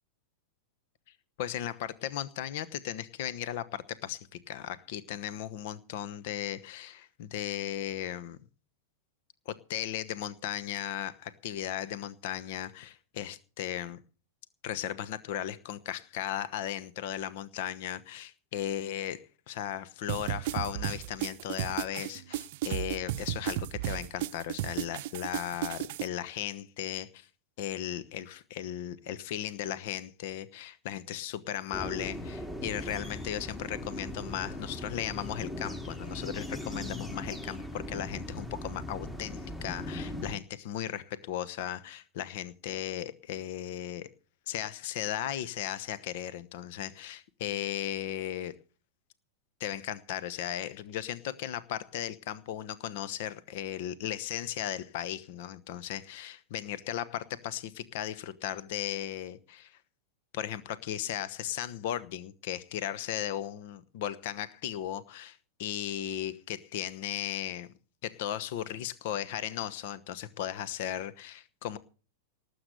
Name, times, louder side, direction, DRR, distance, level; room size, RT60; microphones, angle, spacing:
voice 1, 1.4-8.4 9.5-14.0 14.6-27.3 27.6-44.1 44.5-48.6 49.6-59.8 60.3-67.7 68.0-71.8, left 11 dB, 60° left, 1.0 m, -36 dB
sound 1, 20.1-26.1, right 15 dB, 55° right, 0.6 m, -34 dB
sound 2, 31.7-40.4, left 1 dB, 10° left, 2.3 m, -39 dB
19.0 x 8.0 x 6.8 m
figure-of-eight pair, 95°, 0 cm